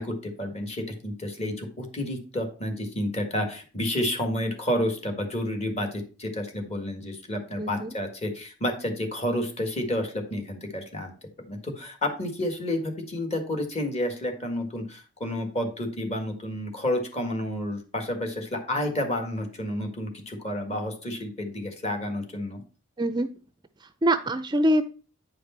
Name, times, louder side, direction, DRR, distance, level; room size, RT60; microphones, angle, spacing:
voice 1, 0.0-11.2 11.5-22.6, left 1 dB, 35° left, 4 dB, 1.9 m, -30 dB
voice 2, 7.6-7.9 23.0-23.3 23.8-24.9, right 1 dB, 20° right, 11 dB, 0.4 m, -24 dB
9.2 x 5.0 x 4.4 m, 0.37 s
head